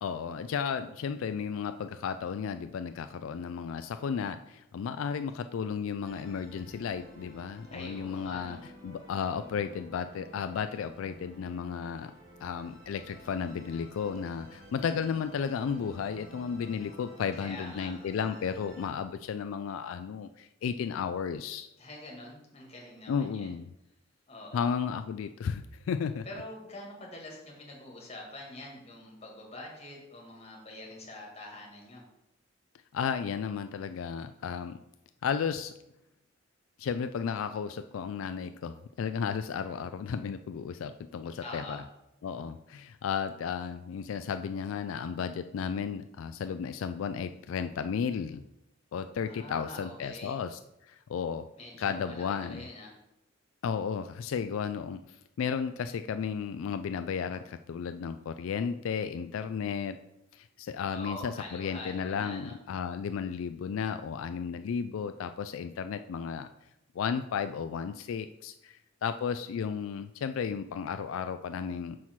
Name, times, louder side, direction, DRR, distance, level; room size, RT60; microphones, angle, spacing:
voice 1, 0.0-8.6 8.8-12.1 12.4-21.7 23.1-23.7 24.5-26.3 32.9-34.8 35.2-35.7 36.8-41.8 42.2-48.4 48.9-50.6 50.9-51.5 51.8-52.6 53.6-60.0 60.3-66.5 66.9-72.0, left 6 dB, 80° left, 9 dB, 0.3 m, -34 dB
Musical instrument, 6.1-18.9, equal, 45° right, 2.6 m, -52 dB
voice 2, 7.7-8.6 17.3-17.9 21.8-23.5 24.3-24.7 26.3-32.0 41.4-41.8 49.3-50.3 51.5-52.9 60.9-62.5, left 2 dB, 30° left, -2 dB, 2.1 m, -45 dB
6.1 x 5.7 x 4.6 m, 0.87 s
head